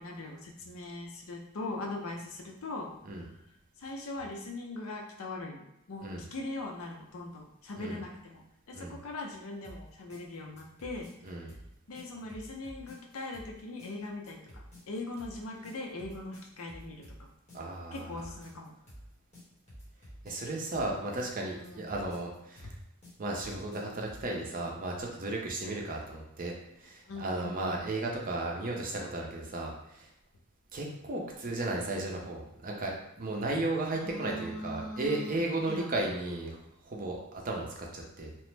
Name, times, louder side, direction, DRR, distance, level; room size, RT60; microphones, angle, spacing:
voice 1, 0.0-2.9 3.8-8.4 8.7-11.4 11.9-14.4 14.9-17.0 17.9-18.7 21.6-21.9 22.6-22.7 27.1-27.9 33.9-35.8, left 2 dB, 70° left, 1 dB, 0.5 m, -40 dB
sound 1, 9.6-24.3, equal, 30° left, 1.1 m, -51 dB
voice 2, 17.5-18.3 20.2-22.7 23.2-30.1 30.7-36.6 36.8-38.4, right 2 dB, 40° right, 0 dB, 0.5 m, -35 dB
3.0 x 2.0 x 3.2 m, 0.82 s
head